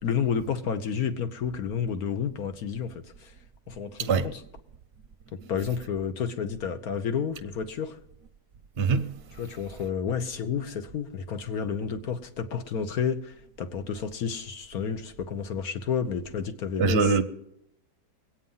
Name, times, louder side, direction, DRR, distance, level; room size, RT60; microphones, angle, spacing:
voice 1, 0.0-3.3 3.7-4.4 5.5-8.0 9.4-17.2, left 7 dB, 65° left, 1.4 m, -31 dB
voice 2, 8.8-9.1 16.8-17.2, right 5 dB, 50° right, 0.8 m, -22 dB
22.0 x 8.8 x 5.6 m
omnidirectional pair, 1.8 m